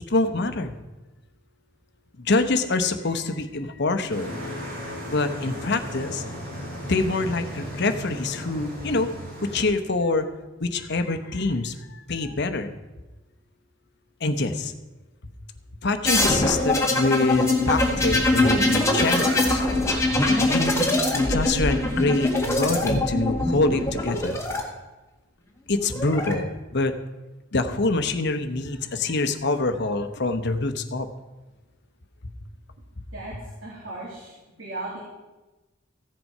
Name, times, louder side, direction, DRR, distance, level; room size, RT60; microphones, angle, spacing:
voice 1, 0.1-0.7 2.2-4.4 5.1-6.2 6.8-9.1 9.4-10.3 10.6-12.7 14.2-14.7 15.8-19.6 20.4-24.4 25.7-26.9 27.5-31.1 32.2-32.3, left 3 dB, 60° left, 8 dB, 1.0 m, -25 dB
sound 1, 4.1-9.7, equal, 50° right, 4.3 m, -35 dB
sound 2, 16.0-24.6 25.7-26.3, left 2 dB, 15° left, 1.8 m, -23 dB
voice 2, 33.6-35.0, right 2 dB, 90° right, -5 dB, 2.7 m, -36 dB
15.0 x 7.6 x 5.5 m, 1.1 s
head